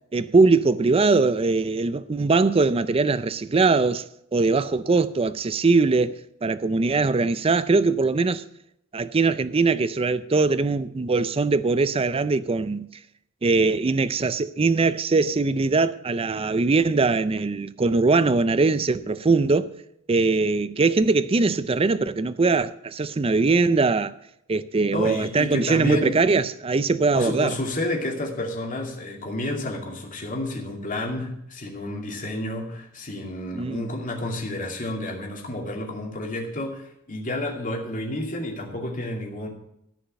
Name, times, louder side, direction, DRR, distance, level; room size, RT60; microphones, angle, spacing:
voice 1, 0.1-4.0 4.3-8.4 8.9-12.9 13.4-19.7 20.1-24.1 24.5-27.6 33.5-33.9, right 3 dB, 25° right, 0.4 m, -21 dB
voice 2, 24.9-26.2 27.1-39.5, left 1 dB, 40° left, 2.4 m, -30 dB
14.0 x 5.6 x 8.9 m
head